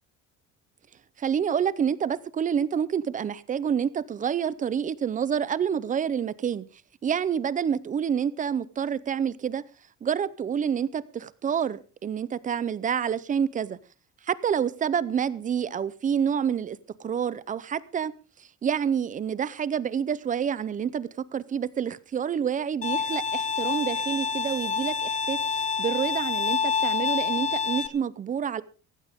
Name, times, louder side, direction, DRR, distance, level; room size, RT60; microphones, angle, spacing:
voice 1, 1.2-6.7 7.0-9.6 10.0-13.8 14.2-18.1 18.6-28.6, right 8 dB, 25° right, 0.6 m, -28 dB
Bowed string instrument, 22.8-27.9, left 5 dB, 25° left, 1.0 m, -27 dB
17.5 x 15.5 x 3.6 m
cardioid pair, 170°, 29 cm